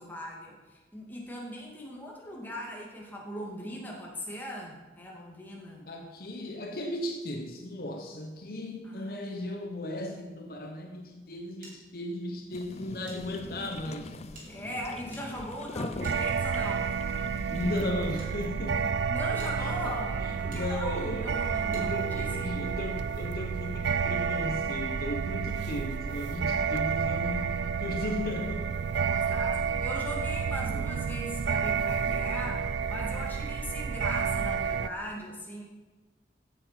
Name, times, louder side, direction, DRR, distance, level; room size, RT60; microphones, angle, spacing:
voice 1, 0.0-5.9 8.8-9.2 14.5-16.9 19.1-22.6 27.9-28.1 28.9-35.6, equal, 10° left, -3 dB, 2.4 m, -39 dB
voice 2, 5.9-14.1 17.5-18.9 19.6-19.9 20.2-21.3 21.7-28.7 30.7-30.8, left 1 dB, 55° left, 3 dB, 1.2 m, -36 dB
sound 1, 11.6-13.2 13.5-13.6 14.3-16.8 17.6-18.3 18.9-19.0 19.4-19.5 20.5-20.6 21.7-21.9, right 2 dB, 50° right, 3.7 m, -53 dB
sound 2, 12.5-17.9, left 2 dB, 35° left, 0.6 m, -42 dB
sound 3, 16.0-34.9, right 6 dB, 80° right, 0.4 m, -30 dB
15.5 x 7.2 x 6.0 m, 1.2 s
head